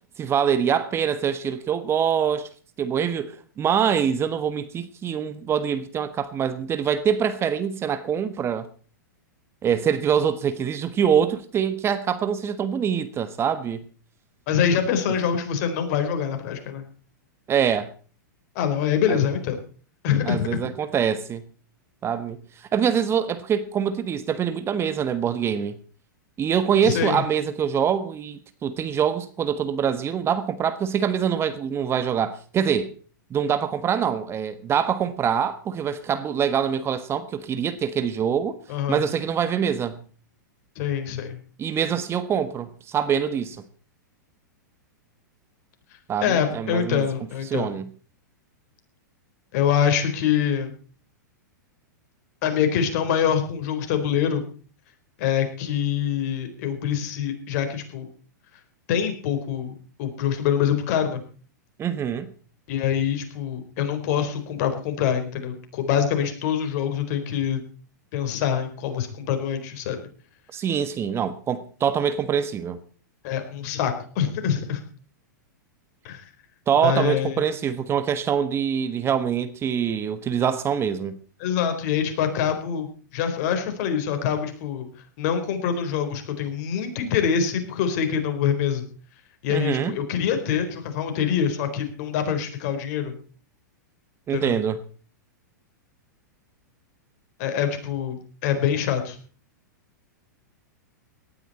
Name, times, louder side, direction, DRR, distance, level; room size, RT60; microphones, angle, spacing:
voice 1, 0.2-2.5 2.8-8.7 9.6-13.8 17.5-17.9 19.1-19.2 20.2-21.4 22.0-22.4 22.7-25.8 26.4-32.9 33.3-38.6 38.9-40.0 41.6-43.6 46.1-47.0 47.5-47.9 61.8-62.3 70.5-72.8 76.7-81.2 89.5-90.0 94.3-94.8, right 8 dB, 25° right, 1.3 m, -24 dB
voice 2, 14.5-16.9 18.5-19.6 20.0-20.7 26.8-27.2 38.7-39.0 40.8-41.4 46.2-47.7 49.5-50.7 52.4-54.4 55.2-58.1 58.9-61.2 62.7-67.6 68.1-70.0 73.2-74.8 76.0-76.2 76.8-77.4 81.4-84.9 85.2-88.9 89.4-93.1 94.3-94.6 97.4-99.2, left 8 dB, 50° left, 4.3 m, -25 dB
18.0 x 12.5 x 4.2 m
hypercardioid pair, 110°, 10 cm